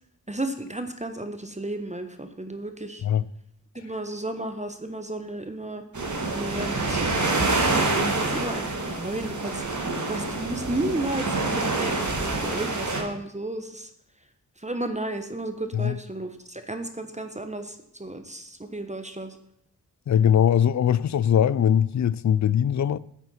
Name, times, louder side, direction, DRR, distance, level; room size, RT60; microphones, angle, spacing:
voice 1, 0.3-3.1 3.7-5.8 6.3-13.9 14.6-19.4, right 1 dB, 20° right, 1.1 m, -33 dB
sound 1, 5.9-13.0, right 3 dB, 50° right, 2.0 m, -27 dB
voice 2, 20.1-23.0, left 9 dB, 50° left, 0.4 m, -21 dB
9.7 x 8.4 x 4.3 m
cardioid pair, 40°, 37 cm